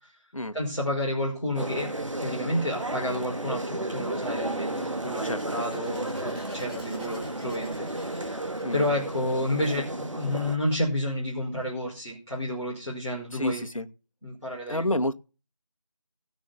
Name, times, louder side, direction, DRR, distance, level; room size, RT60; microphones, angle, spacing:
voice 1, 0.5-1.9 2.2-8.4 8.7-13.7 14.2-15.0, left 1 dB, ahead, 2.1 m, -30 dB
sound 1, 1.5-10.6, right 1 dB, 70° right, 2.1 m, -33 dB
sound 2, 3.8-10.3, equal, 15° right, 5.6 m, -51 dB
voice 2, 5.2-5.6 8.6-8.9 13.3-13.9 14.7-15.1, left 1 dB, 85° left, 1.7 m, -29 dB
17.5 x 6.2 x 7.1 m
figure-of-eight pair, 180°, 17 cm